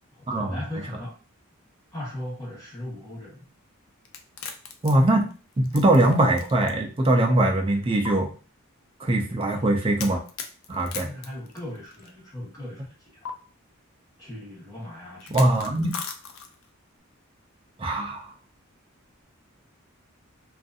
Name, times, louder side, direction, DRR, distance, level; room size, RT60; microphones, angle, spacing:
voice 1, 0.1-1.2 1.9-3.5 9.5-10.1 10.7-13.3 14.2-15.4, left 1 dB, 15° left, -7 dB, 1.4 m, -38 dB
sound 1, 4.1-6.7 7.0-7.1 8.0-8.1 10.0-12.1 13.2-13.3 15.2-16.7, left 6 dB, 65° left, 0.4 m, -38 dB
voice 2, 4.8-5.3 5.6-8.3 9.0-10.2 10.7-11.1 15.3-15.9 17.8-18.3, right 1 dB, 25° right, 2 dB, 0.4 m, -21 dB
2.5 x 2.4 x 2.5 m, 0.37 s
head